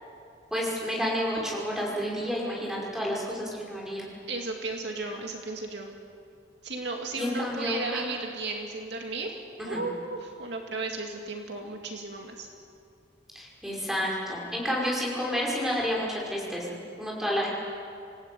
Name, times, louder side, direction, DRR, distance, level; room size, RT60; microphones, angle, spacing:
voice 1, 0.5-4.1 7.1-8.0 9.6-9.8 13.3-17.5, equal, ahead, -4 dB, 5.5 m, -30 dB
voice 2, 4.3-5.9 6.6-9.3 9.7-12.5, right 3 dB, 60° right, 2 dB, 2.4 m, -34 dB
27.5 x 17.5 x 9.2 m, 2.5 s
head